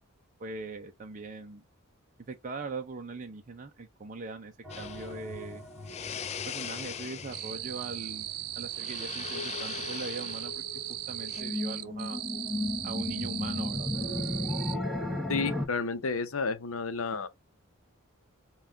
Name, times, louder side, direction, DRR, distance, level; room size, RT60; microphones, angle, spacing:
voice 1, 0.4-1.6 2.3-5.6 6.5-8.3 8.5-12.2 12.8-13.9, right 3 dB, 40° right, 0.5 m, -41 dB
sound 1, 4.6-15.7, left 1 dB, ahead, 1.1 m, -36 dB
sound 2, 4.7-11.4, left 8 dB, 30° left, 0.3 m, -42 dB
sound 3, 7.3-14.8, right 14 dB, 90° right, 0.5 m, -38 dB
voice 2, 15.3-17.3, left 4 dB, 70° left, 0.7 m, -31 dB
5.5 x 2.3 x 2.7 m
head